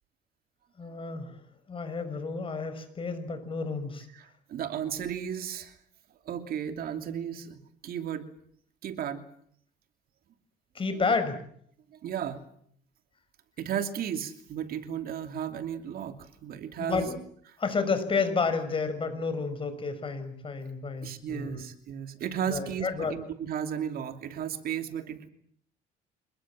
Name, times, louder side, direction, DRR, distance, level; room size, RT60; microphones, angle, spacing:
voice 1, 0.8-1.4 1.7-4.1 10.7-11.4 16.8-17.2 17.6-21.6 22.5-23.1, left 4 dB, 30° left, 9 dB, 6.1 m, -30 dB
voice 2, 4.1-5.8 6.2-8.3 8.8-9.2 11.9-12.4 13.6-17.1 21.0-25.3, right 9 dB, 60° right, 7 dB, 2.9 m, -34 dB
27.5 x 21.5 x 7.6 m, 0.65 s
cardioid pair, 110°, 17 cm